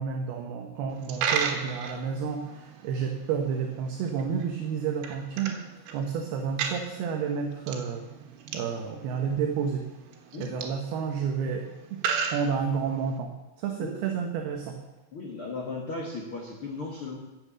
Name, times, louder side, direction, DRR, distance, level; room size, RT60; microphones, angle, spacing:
voice 1, 0.0-5.6 5.9-8.1 8.5-9.8 10.4-11.6 11.9-12.0 12.3-13.3 13.6-14.8, right 6 dB, 70° right, 3 dB, 2.5 m, -30 dB
Coin (dropping), 0.9-13.2, right 6 dB, 90° right, 4.0 m, -36 dB
voice 2, 15.1-17.2, left 3 dB, 70° left, -1 dB, 1.2 m, -36 dB
13.5 x 8.6 x 7.4 m, 1.0 s
omnidirectional pair, 5.6 m